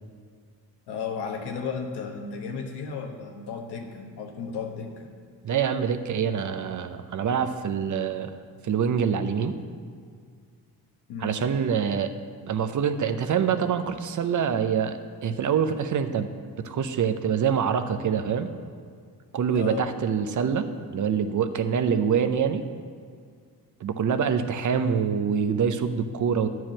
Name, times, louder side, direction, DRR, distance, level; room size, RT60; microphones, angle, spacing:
voice 1, 0.9-5.1 11.1-11.4 19.5-20.3 24.4-24.5, left 5 dB, 85° left, 3 dB, 1.3 m, -34 dB
voice 2, 5.4-8.3 8.6-9.6 11.2-12.1 12.5-16.3 16.6-18.5 19.3-20.7 20.9-22.6 23.8-26.5, right 7 dB, 50° right, 9 dB, 0.7 m, -25 dB
10.0 x 4.7 x 7.6 m, 2.1 s
cardioid pair, 90°, 38 cm